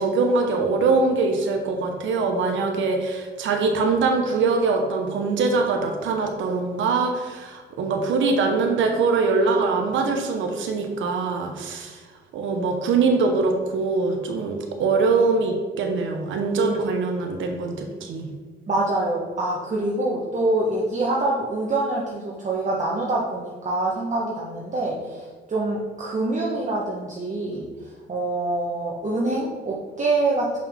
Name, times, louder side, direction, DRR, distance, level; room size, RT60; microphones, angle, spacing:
voice 1, 0.0-12.0 12.3-18.3, right 4 dB, 75° right, 3 dB, 1.1 m, -23 dB
voice 2, 18.7-27.7 28.1-30.6, right 2 dB, 40° right, -4 dB, 1.3 m, -25 dB
6.8 x 5.7 x 3.6 m, 1.4 s
cardioid pair, 90°, 20 cm